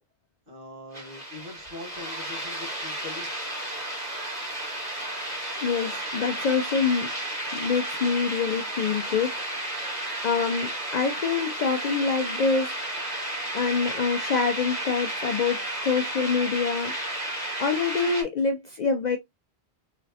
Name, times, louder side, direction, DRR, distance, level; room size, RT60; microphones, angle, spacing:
voice 1, 0.5-3.5, left 3 dB, 55° right, 1.7 m, -42 dB
sound 1, 0.9-18.2, right 1 dB, 40° right, 1.9 m, -32 dB
voice 2, 5.6-7.1 7.5-9.3 10.2-12.7 13.5-16.9 17.6-19.2, left 5 dB, 55° left, 0.5 m, -26 dB
4.0 x 3.1 x 2.7 m
omnidirectional pair, 1.1 m